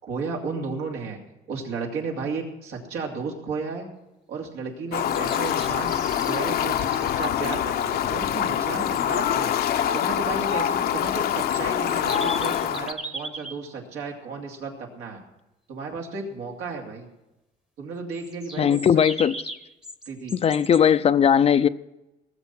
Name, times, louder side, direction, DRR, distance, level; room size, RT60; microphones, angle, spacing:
voice 1, 0.0-1.2 1.5-3.9 4.3-6.0 6.2-9.5 9.9-15.2 15.7-17.1 17.8-18.8 20.1-20.3, right 4 dB, 85° right, 2.9 m, -33 dB
Fowl, 4.9-12.9, left 10 dB, 65° left, 0.8 m, -25 dB
sound 1, 5.1-7.3 11.1-13.5 18.1-20.8, right 1 dB, 5° right, 0.9 m, -38 dB
voice 2, 18.6-19.4 20.3-21.7, left 8 dB, 35° left, 0.5 m, -18 dB
19.0 x 7.5 x 6.0 m
cardioid pair, 110°, 17 cm